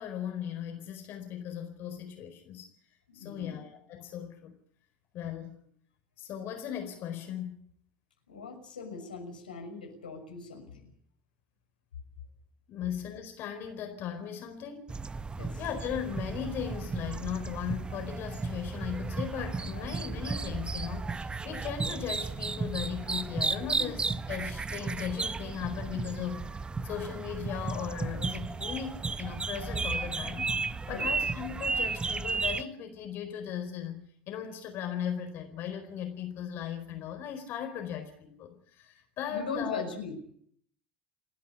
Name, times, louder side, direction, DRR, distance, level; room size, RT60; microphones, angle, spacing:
voice 1, 0.0-2.7 3.1-4.5 5.1-5.6 6.2-7.6 12.7-14.9 15.6-26.5 26.8-30.5 30.9-39.8, left 9 dB, 55° left, 6 dB, 4.5 m, -37 dB
voice 2, 3.1-3.6 8.3-10.9 15.4-15.6 19.8-19.9 23.6-23.9 30.9-31.1 39.3-40.3, left 4 dB, 90° left, 2 dB, 5.9 m, -40 dB
sound 1, 14.9-32.6, right 4 dB, 20° right, 0.9 m, -34 dB
30.0 x 11.5 x 9.7 m, 0.64 s
hypercardioid pair, 70°, 5 cm